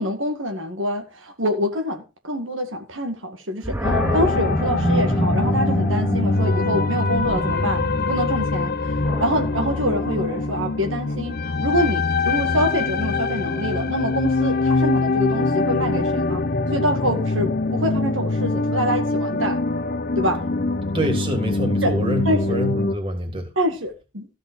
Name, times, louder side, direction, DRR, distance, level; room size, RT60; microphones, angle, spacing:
voice 1, 0.0-8.9 9.2-16.4 16.7-19.6 20.2-20.4 21.8-21.9 22.3-22.6 23.6-24.3, equal, 80° right, 2.0 m, -25 dB
Animal, 3.6-10.8, right 1 dB, 10° right, 0.9 m, -28 dB
sound 1, 3.8-23.0, left 3 dB, 50° left, 0.8 m, -23 dB
voice 2, 20.9-23.5, equal, 30° right, 3.1 m, -26 dB
14.0 x 5.6 x 6.2 m
head